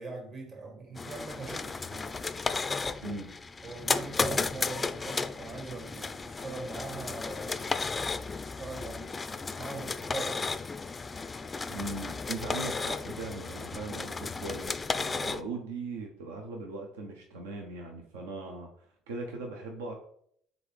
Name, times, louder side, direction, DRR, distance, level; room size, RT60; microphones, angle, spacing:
voice 1, 0.0-2.1 3.6-9.2 9.6-10.5, right 3 dB, 55° right, 2 dB, 1.6 m, -42 dB
sound 1, 1.0-15.4, left 4 dB, 25° left, 0.3 m, -34 dB
voice 2, 11.7-19.9, right 3 dB, 90° right, 1 dB, 0.6 m, -39 dB
3.8 x 3.6 x 3.2 m, 0.65 s
hypercardioid pair, 65°, 0 cm